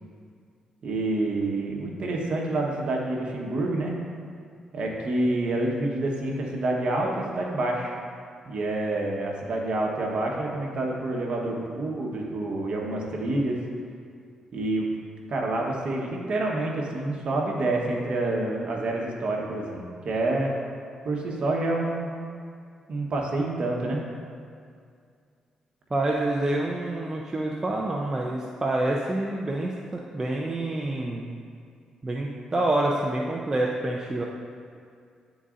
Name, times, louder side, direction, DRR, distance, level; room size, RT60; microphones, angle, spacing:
voice 1, 0.8-3.9 4.7-7.9 8.4-13.6 14.5-14.9 15.3-20.5 21.0-22.1 22.9-24.0, right 2 dB, 60° right, -1 dB, 1.1 m, -27 dB
voice 2, 25.9-31.3 32.0-34.2, right 1 dB, 25° right, -2 dB, 0.5 m, -27 dB
9.9 x 4.0 x 2.5 m, 2.3 s
cardioid pair, 80°, 2 cm